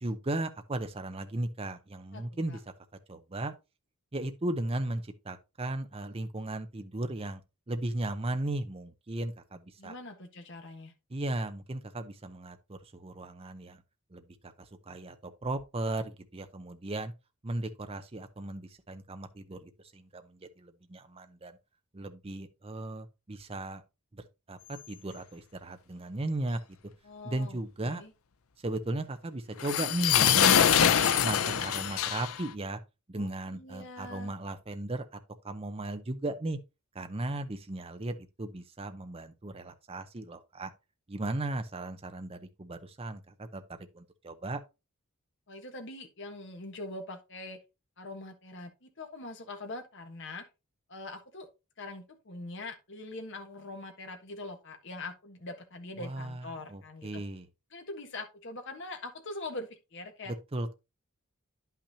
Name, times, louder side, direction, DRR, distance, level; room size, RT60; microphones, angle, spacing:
voice 1, 0.0-2.6 3.1-3.5 4.1-9.9 11.1-13.8 14.1-17.1 17.4-21.6 21.9-23.8 24.1-26.6 27.2-28.0 28.6-30.9 31.2-32.8 33.1-35.1 35.4-36.6 36.9-40.7 41.1-44.6 56.0-57.5 60.3-60.7, right 2 dB, 25° right, 0.6 m, -36 dB
voice 2, 9.8-10.9 27.0-27.6 27.8-28.1 33.1-34.3 45.5-47.6 48.0-50.4 50.9-51.5 51.8-57.2 57.7-60.3, left 2 dB, 55° left, 1.4 m, -43 dB
sound 1, 29.6-32.5, left 9 dB, 70° left, 0.6 m, -24 dB
10.0 x 5.8 x 2.8 m
head